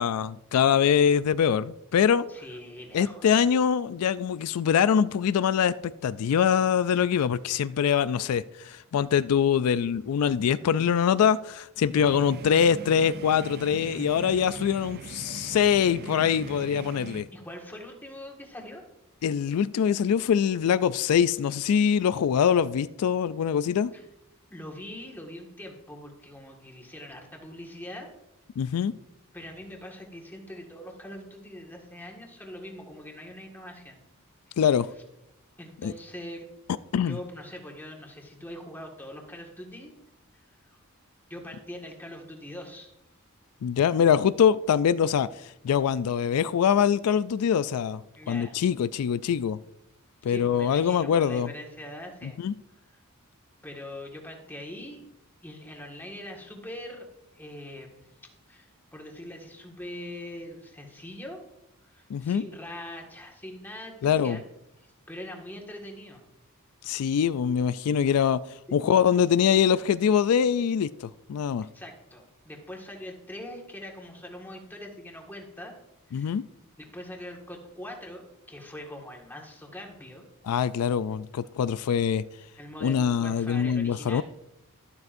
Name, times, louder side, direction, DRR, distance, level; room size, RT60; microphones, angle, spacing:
voice 1, 0.0-2.3 2.9-17.3 19.2-23.9 28.6-28.9 34.6-34.9 35.8-35.9 36.9-37.2 43.6-48.0 48.3-49.6 50.2-51.5 52.2-52.5 62.1-62.4 64.0-64.4 66.8-68.4 68.7-71.7 76.1-76.4 80.4-82.2 82.8-84.2, left 8 dB, 85° left, 0.3 m, -24 dB
voice 2, 2.3-3.4 17.3-18.9 23.9-24.0 24.5-28.2 29.3-34.0 34.5-34.6 35.6-36.4 37.0-39.9 40.3-40.4 40.7-40.8 41.3-42.9 48.2-48.5 50.3-52.4 52.9-53.0 53.6-55.1 55.4-57.1 57.3-58.1 58.5-61.4 61.9-64.5 65.1-66.2 66.8-67.0 71.7-75.7 76.1-76.4 76.8-80.2 80.8-80.9 82.6-84.2, left 1 dB, 10° left, 1.7 m, -42 dB
sound 1, 11.9-17.2, right 5 dB, 45° right, 0.3 m, -41 dB
12.0 x 12.0 x 2.6 m
head